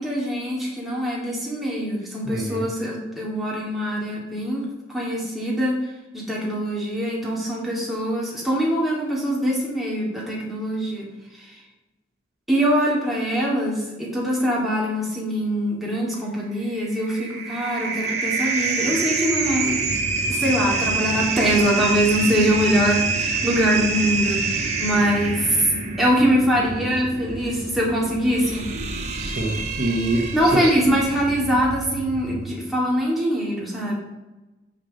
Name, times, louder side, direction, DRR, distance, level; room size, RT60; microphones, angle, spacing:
voice 1, 0.0-5.8 6.1-11.6 12.5-19.8 20.3-25.7 26.0-28.7 30.3-33.9, equal, ahead, -5 dB, 2.4 m, -23 dB
voice 2, 2.2-2.7 29.2-30.2 30.6-30.7, right 2 dB, 55° right, 1 dB, 1.1 m, -26 dB
sound 1, 16.7-31.2, right 4 dB, 35° right, 1.3 m, -27 dB
sound 2, 19.4-32.6, right 1 dB, 90° right, 1.0 m, -34 dB
7.2 x 6.5 x 6.5 m, 1.1 s
head